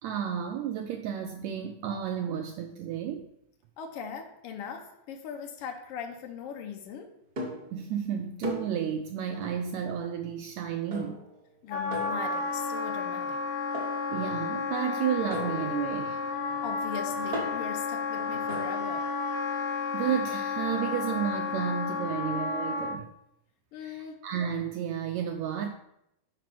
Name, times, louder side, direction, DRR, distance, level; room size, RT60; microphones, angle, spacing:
voice 1, 0.0-3.3 7.7-11.2 14.1-16.2 19.9-23.1 23.8-25.7, right 8 dB, 80° right, 4 dB, 1.6 m, -32 dB
voice 2, 3.8-7.1 11.6-13.4 16.6-19.1 23.7-24.2, left 7 dB, 90° left, 4 dB, 1.3 m, -39 dB
sound 1, 7.4-7.8 8.4-8.9 9.4-9.7 10.9-11.4 11.9-12.6 13.7-14.1 15.3-18.8, equal, 40° right, 1.4 m, -39 dB
Wind instrument woodwind instrument, 11.7-23.0, left 4 dB, 75° left, 1.8 m, -32 dB
5.9 x 4.6 x 5.9 m, 0.79 s
omnidirectional pair, 3.6 m